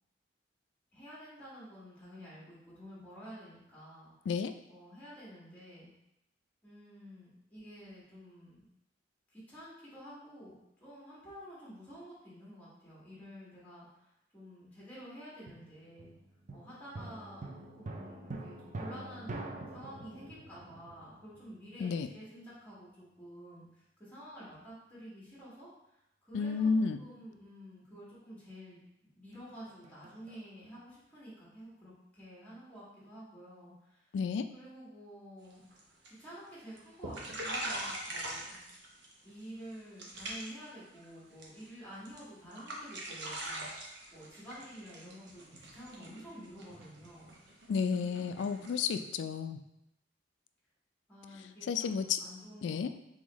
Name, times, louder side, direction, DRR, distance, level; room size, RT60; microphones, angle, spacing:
voice 1, 0.9-4.1 4.7-5.9 6.6-8.6 9.3-14.1 14.3-16.1 16.5-26.7 27.0-34.1 34.5-35.6 36.1-38.6 39.2-47.6 47.9-48.4 51.1-52.9, equal, 10° left, -8 dB, 1.5 m, -50 dB
sound 1, 15.5-21.8 29.3-30.5, right 2 dB, 40° right, 0.4 m, -45 dB
voice 2, 26.3-27.0 34.1-34.5 47.7-49.6 51.7-52.2 52.6-52.9, left 5 dB, 80° left, 9 dB, 0.3 m, -31 dB
sound 2, 35.5-35.8 36.0-36.5 36.8-36.9 37.0-39.1 39.4-39.7 40.0-40.6 40.9-41.7 42.0-42.2 42.5-48.9, right 1 dB, 70° right, 0.8 m, -42 dB
3.8 x 3.5 x 3.0 m, 0.84 s
head